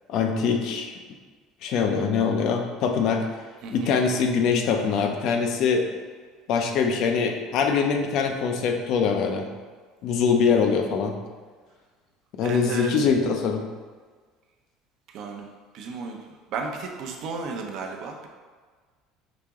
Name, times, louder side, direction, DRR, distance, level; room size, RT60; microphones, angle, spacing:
voice 1, 0.1-0.9 1.6-3.3 3.7-5.9 6.5-9.5 10.0-11.2 12.4-13.6, left 5 dB, 60° left, 4 dB, 0.6 m, -23 dB
voice 2, 3.6-4.0 12.4-13.1 15.1-15.5 15.7-16.2 16.5-18.3, right 4 dB, 60° right, 2 dB, 0.7 m, -33 dB
5.0 x 2.8 x 3.6 m, 1.5 s
supercardioid pair, 105°, 0 cm